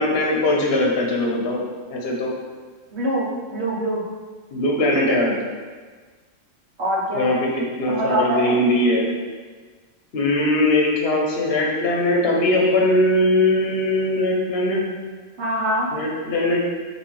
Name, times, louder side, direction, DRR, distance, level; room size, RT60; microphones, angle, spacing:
voice 1, 0.0-1.6 1.9-2.3 4.5-5.3 7.1-9.1 10.1-14.8 15.9-16.6, left 1 dB, 55° left, -1 dB, 1.0 m, -20 dB
voice 2, 2.9-4.0 6.8-7.3 7.9-8.6 15.4-15.9, right 1 dB, 60° right, -6 dB, 1.3 m, -24 dB
5.8 x 2.8 x 3.2 m, 1.4 s
omnidirectional pair, 1.3 m